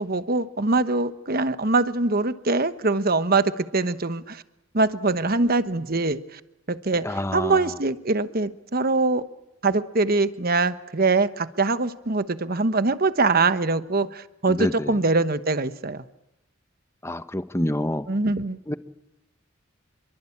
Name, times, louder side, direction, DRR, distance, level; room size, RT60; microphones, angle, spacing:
voice 1, 0.0-4.4 4.7-6.4 6.7-9.2 9.6-16.0 18.1-18.6, right 3 dB, 45° right, 12 dB, 1.2 m, -23 dB
voice 2, 7.0-7.6 14.5-14.9 17.0-18.1 18.7-18.8, left 1 dB, 15° left, 11 dB, 1.0 m, -27 dB
28.0 x 23.5 x 8.7 m, 0.90 s
head